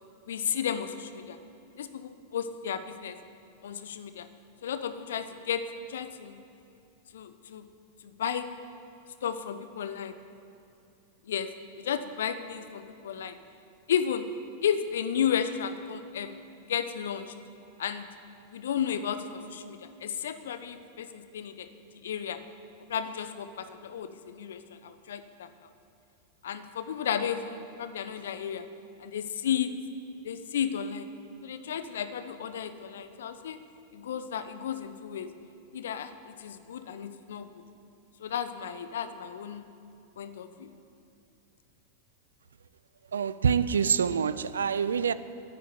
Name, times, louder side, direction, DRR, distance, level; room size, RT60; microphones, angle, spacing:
voice 1, 0.3-1.4 1.8-3.2 3.6-4.3 4.6-5.6 5.9-6.4 7.1-7.6 8.0-8.4 9.2-10.1 11.3-11.5 11.8-13.4 13.9-14.3 14.6-16.3 16.7-17.3 17.8-18.0 18.5-21.7 22.0-22.4 22.9-25.5 26.4-28.6 29.0-29.7 30.2-31.1 31.4-33.6 33.9-35.3 35.7-36.1 36.4-37.5 38.2-39.7 40.2-40.7, left 8 dB, 60° left, 0.8 m, -33 dB
voice 2, 43.1-45.1, right 6 dB, 70° right, 0.4 m, -26 dB
10.5 x 8.8 x 9.4 m
figure-of-eight pair, 90°, 0 cm